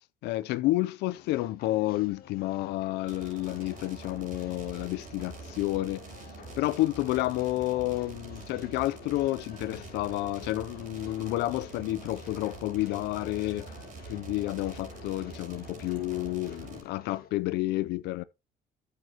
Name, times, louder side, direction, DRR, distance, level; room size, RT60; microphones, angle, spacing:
voice 1, 0.2-6.0 6.6-13.7 14.1-18.2, left 17 dB, 85° left, 0.5 m, -30 dB
sound 1, 1.1-17.3, left 10 dB, 65° left, 1.6 m, -52 dB
sound 2, 3.1-16.8, right 4 dB, 50° right, 5.3 m, -45 dB
9.1 x 8.6 x 2.9 m
cardioid pair, 110°, 17 cm